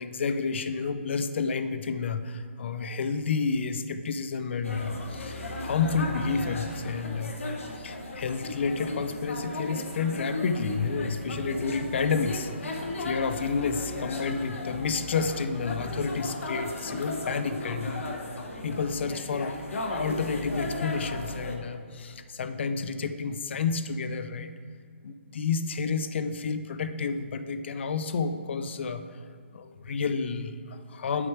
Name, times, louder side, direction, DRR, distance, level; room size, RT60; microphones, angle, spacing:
voice 1, 0.0-5.3 5.6-7.4 7.8-18.0 18.3-19.6 19.9-24.5 25.0-29.2 29.5-31.3, left 5 dB, 60° left, 10 dB, 0.4 m, -30 dB
sound 1, 4.6-21.6, left 2 dB, 85° left, 1.0 m, -36 dB
7.9 x 4.7 x 4.6 m, 2.2 s
hypercardioid pair, 155°, 7 cm